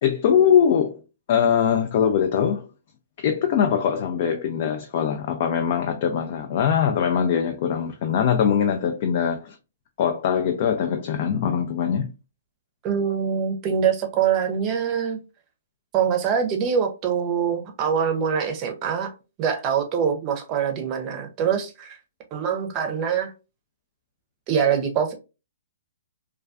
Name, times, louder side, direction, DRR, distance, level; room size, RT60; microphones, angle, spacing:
voice 1, 0.0-1.0 1.3-2.7 3.2-9.6 10.0-12.1, left 8 dB, 50° left, 0.3 m, -22 dB
voice 2, 12.8-15.2 15.9-19.1 19.4-22.0 22.3-23.3 24.5-25.1, right 7 dB, 30° right, 0.6 m, -24 dB
2.3 x 2.3 x 2.4 m
hypercardioid pair, 125°, 0 cm